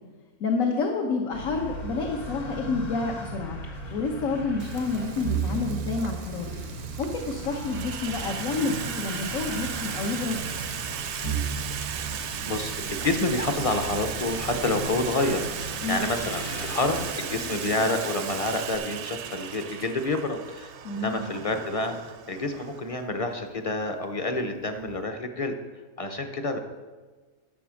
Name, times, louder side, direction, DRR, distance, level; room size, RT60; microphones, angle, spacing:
voice 1, 0.4-3.6 3.9-6.6 7.0-10.4 15.8-16.1 20.8-21.2, left 4 dB, 65° left, 1 dB, 1.4 m, -29 dB
sound 1, 1.3-19.2, right 3 dB, 85° left, 2.1 m, -36 dB
Frying (food), 4.6-18.8, right 8 dB, 85° right, 1.2 m, -42 dB
Water tap faucet / Sink (filling or washing), 6.9-7.1 7.4-25.0, right 9 dB, 60° right, 0.8 m, -37 dB
voice 2, 12.0-25.5 26.0-26.6, left 2 dB, 30° left, 6 dB, 0.7 m, -28 dB
10.5 x 6.9 x 6.3 m, 1.3 s
omnidirectional pair, 1.5 m